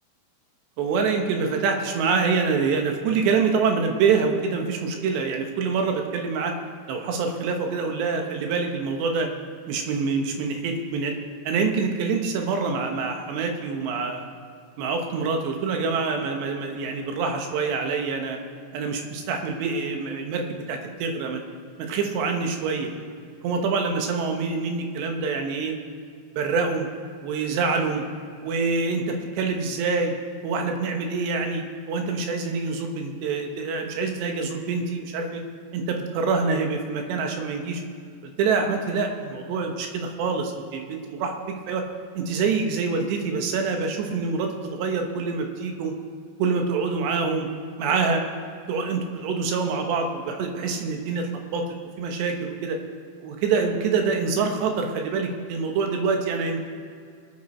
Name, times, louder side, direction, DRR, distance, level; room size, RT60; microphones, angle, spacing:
voice 1, 0.8-6.5 6.9-9.3 9.7-11.2 11.4-14.2 14.8-18.4 18.7-21.4 21.8-22.9 23.4-25.8 26.4-26.9 27.2-28.0 28.4-30.1 30.4-35.4 35.7-37.8 38.4-41.8 42.2-45.9 46.4-47.5 47.8-48.2 48.7-51.6 52.0-52.8 53.2-56.7, right 4 dB, 75° right, 3 dB, 3.3 m, -26 dB
21.5 x 9.3 x 4.3 m, 2.2 s
omnidirectional pair, 5.2 m